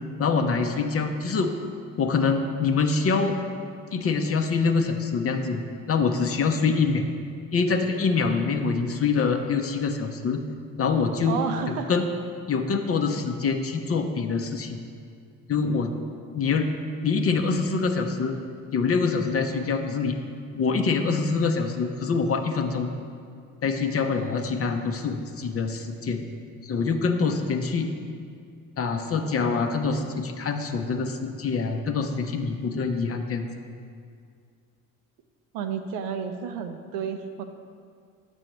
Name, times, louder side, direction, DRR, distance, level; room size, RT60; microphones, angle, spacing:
voice 1, 0.2-1.5 2.0-3.4 3.9-5.6 5.9-7.0 7.5-10.4 10.8-11.4 11.7-12.1 12.5-14.8 15.5-15.9 16.3-16.7 17.0-18.4 18.7-20.2 20.5-22.9 23.6-26.2 26.6-27.9 28.8-33.5, left 4 dB, 35° left, 5 dB, 0.6 m, -25 dB
voice 2, 11.2-11.9 35.5-37.4, right 7 dB, 70° right, 7 dB, 0.6 m, -31 dB
7.5 x 6.1 x 3.0 m, 2.2 s
hypercardioid pair, 55°, 42 cm